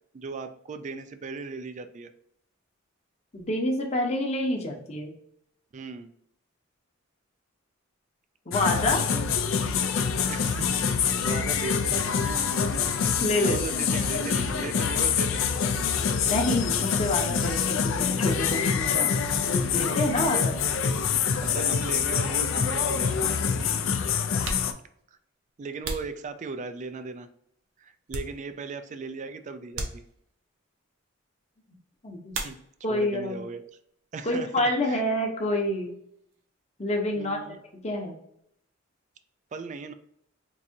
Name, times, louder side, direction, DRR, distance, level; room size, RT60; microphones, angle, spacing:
voice 1, 0.1-2.1 5.7-6.1 10.3-12.9 13.4-16.1 20.3-20.5 21.4-23.3 23.6-23.8 25.6-27.3 27.8-30.0 32.3-32.6 32.9-33.6 34.1-35.0 37.1-37.6 39.5-39.9, right 4 dB, 35° right, 10 dB, 0.3 m, -38 dB
voice 2, 3.3-5.1 8.5-9.0 11.1-11.2 13.2-13.6 16.3-20.4 32.0-32.3 32.8-33.4 34.2-35.9 36.8-37.5 37.8-38.2, left 1 dB, 35° left, 1 dB, 0.8 m, -28 dB
sound 1, 8.5-24.7, left 6 dB, 70° left, 0.4 m, -26 dB
sound 2, 24.4-26.9 27.4-28.8 29.1-29.3 29.7-30.5 32.3-33.1 33.3-34.0 34.3-36.5, right 2 dB, 70° right, 0.7 m, -39 dB
4.6 x 2.6 x 2.7 m, 0.72 s
head